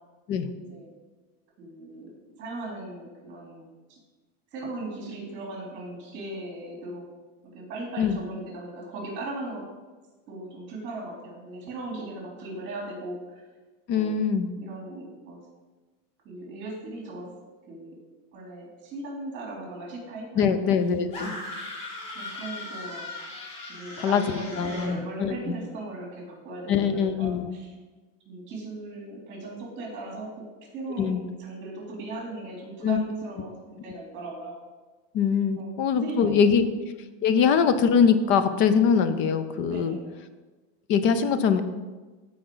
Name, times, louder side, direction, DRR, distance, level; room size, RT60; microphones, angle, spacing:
voice 1, 0.5-0.9 1.6-2.1 2.4-3.6 3.9-4.0 4.5-7.0 7.4-9.6 10.3-13.5 13.9-14.2 14.6-15.4 16.2-17.3 17.7-17.9 18.3-20.7 21.2-21.4 22.1-23.1 23.7-27.7 28.2-30.5 30.7-33.5 33.8-34.6 35.6-37.1 37.3-37.5 39.6-40.0, right 2 dB, 35° right, -2 dB, 3.4 m, -38 dB
voice 2, 13.9-14.5 20.4-21.4 24.0-25.5 26.7-27.5 31.0-31.2 32.8-33.0 35.1-36.6 37.2-40.0 40.9-41.6, left 6 dB, 35° left, 11 dB, 0.6 m, -23 dB
sound 1, 21.1-25.0, left 2 dB, 65° left, 3.4 m, -38 dB
14.5 x 5.1 x 3.9 m, 1.3 s
cardioid pair, 170°, 32 cm